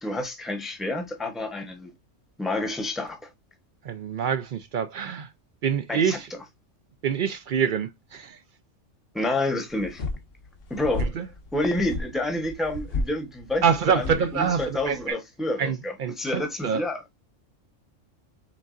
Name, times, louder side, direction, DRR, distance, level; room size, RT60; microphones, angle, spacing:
voice 1, 0.0-1.9 2.4-3.3 5.9-6.2 9.1-10.0 10.7-11.1 11.5-13.6 13.9-17.0, left 2 dB, ahead, 0.8 m, -29 dB
voice 2, 3.8-5.3 5.6-6.3 7.0-8.4 11.0-11.3 13.6-15.2 15.6-16.8, right 7 dB, 70° right, 0.4 m, -26 dB
sound 1, 9.7-15.1, left 2 dB, 70° left, 1.3 m, -34 dB
5.8 x 3.7 x 2.4 m
omnidirectional pair, 1.4 m